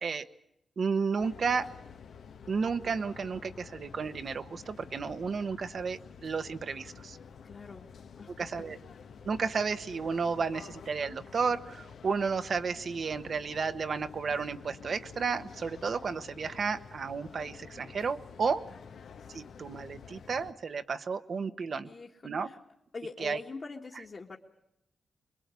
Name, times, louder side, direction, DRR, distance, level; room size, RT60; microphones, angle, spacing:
voice 1, 0.8-1.7 2.5-7.2 8.4-8.8 9.2-18.6 19.3-21.9 22.2-22.5 23.2-23.4, right 5 dB, 60° right, 10 dB, 1.2 m, -32 dB
sound 1, 1.2-20.5, left 6 dB, 85° left, 1.3 m, -50 dB
voice 2, 7.4-7.9 8.2-8.6 21.8-22.1 22.4-22.6 22.9-24.4, left 4 dB, 45° left, -1 dB, 1.9 m, -43 dB
25.0 x 21.5 x 8.3 m, 0.81 s
cardioid pair, 100°, 0 cm